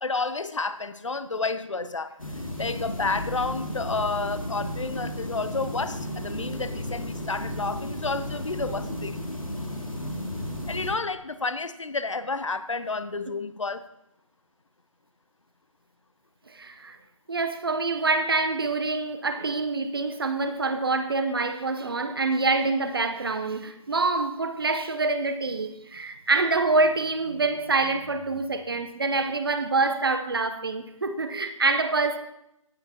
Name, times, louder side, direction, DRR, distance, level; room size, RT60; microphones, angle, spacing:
voice 1, 0.0-9.2 10.7-13.8, left 3 dB, 65° left, 0.7 m, -30 dB
sound 1, 2.2-10.9, left 1 dB, 85° left, 2.4 m, -33 dB
voice 2, 16.5-17.0 17.3-32.2, right 3 dB, 45° right, 0.8 m, -26 dB
16.5 x 8.8 x 2.9 m
figure-of-eight pair, 150°, 17 cm